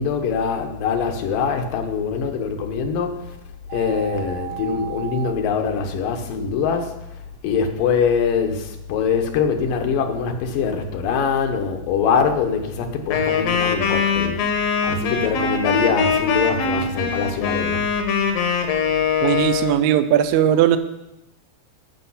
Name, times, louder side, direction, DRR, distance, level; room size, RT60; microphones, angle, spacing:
voice 1, 0.0-3.3 3.7-7.0 7.4-14.4 14.8-17.8, left 6 dB, 80° left, 5 dB, 2.7 m, -23 dB
sound 1, 3.7-5.3, right 11 dB, 65° right, 1.7 m, -33 dB
Wind instrument woodwind instrument, 13.1-19.8, left 5 dB, 60° left, 1.8 m, -22 dB
voice 2, 19.2-20.8, right 11 dB, 80° right, 11 dB, 1.7 m, -18 dB
12.5 x 7.0 x 5.7 m, 0.92 s
omnidirectional pair, 3.9 m